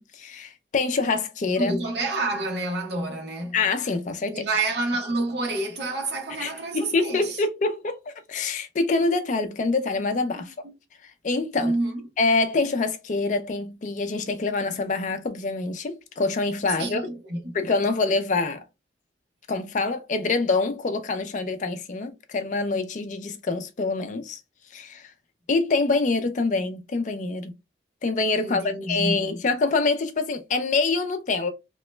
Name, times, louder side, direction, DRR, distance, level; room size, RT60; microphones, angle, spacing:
voice 1, 0.0-1.8 3.5-4.5 6.4-10.7 11.0-11.7 12.2-17.0 17.5-18.6 19.5-24.4 24.7-25.1 25.5-27.5 28.0-31.5, left 3 dB, 45° left, 0.4 m, -25 dB
voice 2, 1.6-3.6 4.3-7.4 10.3-10.5 11.6-12.0 16.8-17.5 28.4-29.3, right 2 dB, 70° right, 1.1 m, -28 dB
2.9 x 2.1 x 3.1 m
head